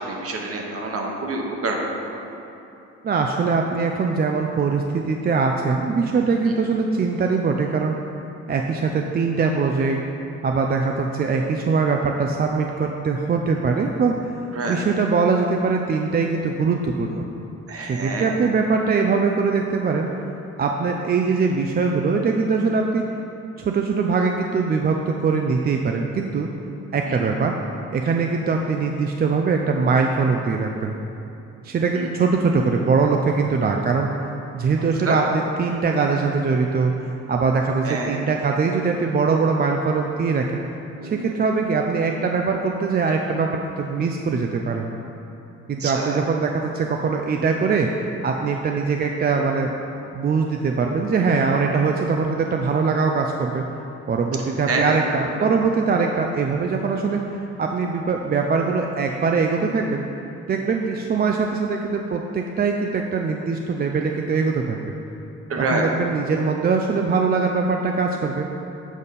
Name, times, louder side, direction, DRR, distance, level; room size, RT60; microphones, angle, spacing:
voice 1, 0.1-1.8 6.4-6.5 14.5-14.8 17.7-18.3 27.1-27.2 32.0-32.1 35.0-35.2 37.8-38.2 41.0-41.2 45.8-46.2 54.7-55.0 55.4-55.5 65.5-65.9, right 3 dB, 50° right, 0 dB, 1.1 m, -27 dB
voice 2, 3.0-7.9 8.5-10.0 10.4-14.3 14.7-17.2 17.8-20.1 20.6-23.1 23.6-26.5 26.9-27.6 27.9-30.9 31.6-34.1 34.5-36.9 37.3-40.6 41.0-44.9 45.7-47.9 48.2-49.7 50.1-53.6 54.1-57.2 57.6-60.0 60.5-64.9 65.6-68.5, right 4 dB, 35° right, 2 dB, 0.4 m, -22 dB
7.2 x 5.1 x 4.2 m, 2.8 s
cardioid pair, 90°, 30 cm